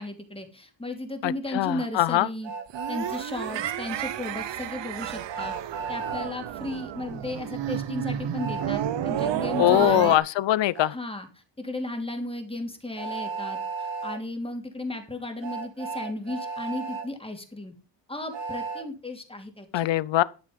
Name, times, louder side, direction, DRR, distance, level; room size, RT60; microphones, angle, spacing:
voice 1, 0.0-2.5 2.9-5.5 5.9-10.2 10.9-17.7 18.1-19.9, left 2 dB, 10° left, 2.9 m, -35 dB
voice 2, 1.2-2.3 9.6-10.9 19.7-20.2, left 14 dB, 80° left, 0.8 m, -22 dB
Train, 2.4-3.2 5.3-6.3 8.4-8.7 10.8-10.9 13.0-14.2 15.4-17.1 18.3-18.8, right 4 dB, 90° right, 2.7 m, -34 dB
sound 1, 2.7-10.2, right 10 dB, 70° right, 1.0 m, -31 dB
12.5 x 6.8 x 5.4 m
cardioid pair, 110°, 43 cm